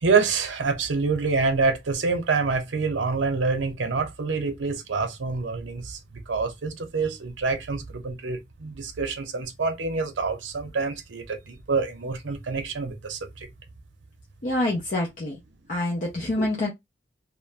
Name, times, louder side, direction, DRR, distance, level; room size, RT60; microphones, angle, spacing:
voice 1, 0.0-6.0 6.3-13.5, right 4 dB, 75° right, 0.6 m, -26 dB
voice 2, 14.4-15.4 15.7-16.7, left 1 dB, 45° left, 0.6 m, -26 dB
2.4 x 2.1 x 3.1 m
head